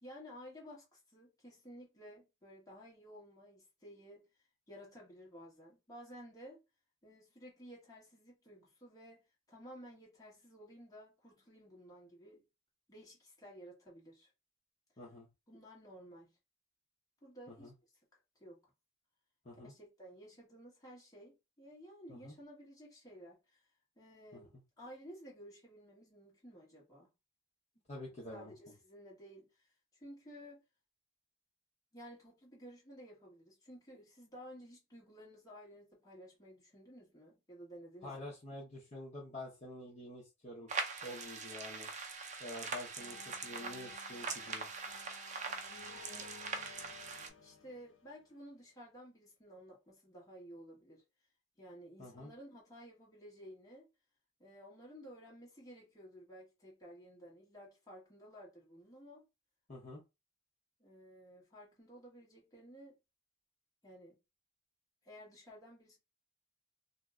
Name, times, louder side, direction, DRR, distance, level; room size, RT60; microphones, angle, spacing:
voice 1, 0.0-4.2 4.7-6.6 7.0-12.4 12.9-14.3 15.5-16.3 17.2-17.7 18.4-18.6 19.6-23.6 24.0-24.5 24.8-27.1 28.1-29.7 30.0-30.6 31.9-38.1 45.9-46.3 47.4-51.0 51.6-53.9 54.4-59.2 60.8-62.9 63.8-64.2 65.0-66.0, equal, 20° left, 1.4 m, -54 dB
voice 2, 15.0-15.3 17.5-17.7 19.4-19.7 22.1-22.3 24.3-24.4 27.9-28.5 38.0-40.7 41.0-41.9 42.4-43.2 43.4-44.7 52.0-52.3 59.7-60.0, left 1 dB, 35° left, 0.8 m, -47 dB
sound 1, 40.7-47.3, right 4 dB, 40° right, 0.6 m, -42 dB
sound 2, 43.0-48.7, left 6 dB, 90° left, 0.6 m, -57 dB
2.7 x 2.1 x 3.5 m
head